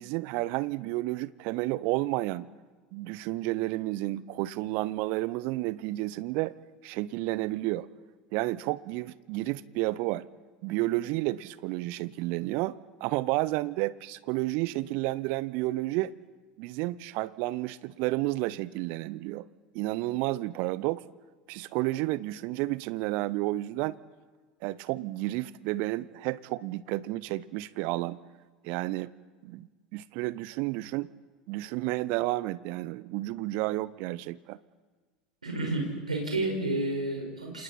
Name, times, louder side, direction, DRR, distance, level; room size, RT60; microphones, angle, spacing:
voice 1, 0.0-2.5 2.9-6.5 6.8-7.9 8.3-10.2 10.6-16.1 16.6-19.5 19.7-21.0 21.5-24.0 24.6-28.2 28.6-29.1 29.4-31.1 31.5-34.6, right 18 dB, 55° right, 19 dB, 0.7 m, -31 dB
voice 2, 35.4-37.6, right 2 dB, 85° right, 1 dB, 5.8 m, -30 dB
29.0 x 26.5 x 4.4 m, 1.4 s
figure-of-eight pair, 75°, 4 cm